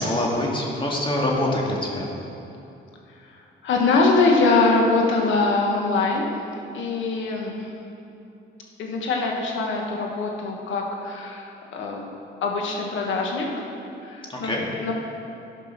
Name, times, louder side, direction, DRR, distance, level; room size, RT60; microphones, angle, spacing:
voice 1, 0.0-2.1 14.3-14.6, left 1 dB, 25° left, -2 dB, 2.1 m, -25 dB
voice 2, 3.3-6.4 6.7-7.7 8.8-12.1 12.4-13.7 14.0-14.5 14.8-14.9, left 3 dB, 75° left, 0 dB, 1.6 m, -23 dB
13.0 x 5.3 x 5.9 m, 2.8 s
cardioid pair, 90°, 20 cm